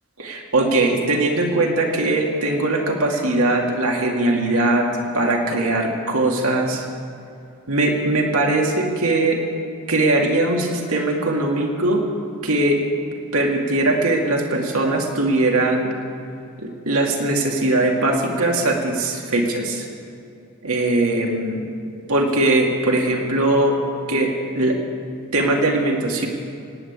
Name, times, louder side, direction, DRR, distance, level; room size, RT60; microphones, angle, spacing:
voice 1, 0.2-4.9 5.1-6.9 7.7-9.4 9.9-12.0 12.4-12.8 13.3-15.9 16.6-19.9 20.6-21.6 22.1-23.8 24.1-24.8 25.3-26.3, right 2 dB, 70° right, 1 dB, 2.4 m, -20 dB
18.0 x 8.7 x 8.9 m, 2.5 s
head